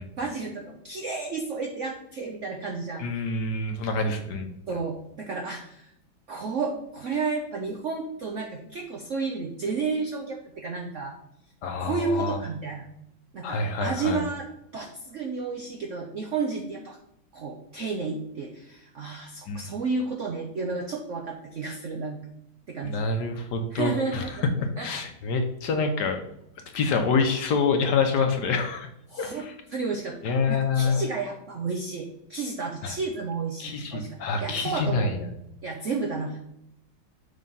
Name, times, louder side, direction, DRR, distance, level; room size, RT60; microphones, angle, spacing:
voice 1, 0.1-3.0 4.7-5.9 6.3-11.2 11.8-12.9 13.3-14.5 14.7-17.0 17.3-22.2 22.7-23.0 23.7-24.5 24.8-24.9 29.1-29.5 29.7-35.1 35.6-36.4, right 4 dB, 70° right, 2 dB, 0.7 m, -32 dB
voice 2, 3.0-4.5 11.6-12.4 13.4-14.2 19.5-19.7 22.8-24.4 24.8-26.2 26.7-28.9 29.2-29.5 30.2-31.0 32.8-32.9 33.6-35.3, left 4 dB, 70° left, 5 dB, 1.2 m, -26 dB
6.4 x 3.3 x 5.3 m, 0.79 s
omnidirectional pair, 2.2 m